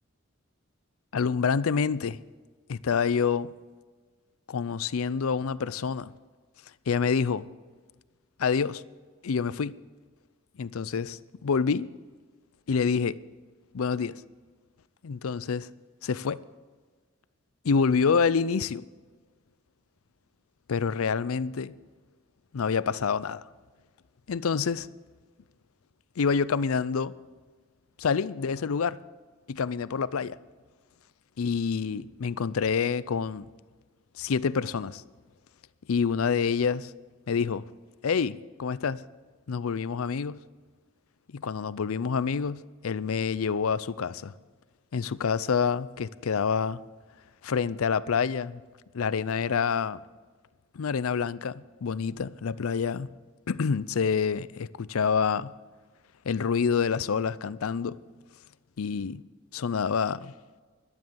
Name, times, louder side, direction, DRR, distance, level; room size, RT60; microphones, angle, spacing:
voice 1, 1.1-2.2 2.7-3.5 4.5-6.1 6.9-7.5 8.4-8.8 9.2-9.8 10.6-11.9 12.7-13.2 13.7-14.1 15.0-15.7 16.0-16.4 17.6-18.8 20.7-21.7 22.5-23.4 24.3-24.9 26.2-27.1 28.0-29.0 29.5-30.4 31.4-33.5 34.2-35.0 35.9-36.9 37.3-37.7 38.0-39.0 39.5-40.4 41.3-44.3 44.9-46.8 47.4-48.6 48.9-50.0 50.7-53.1 53.5-55.5 56.3-58.0 58.8-59.2 59.5-60.3, left 6 dB, 85° left, 0.5 m, -27 dB
12.0 x 11.0 x 7.0 m
head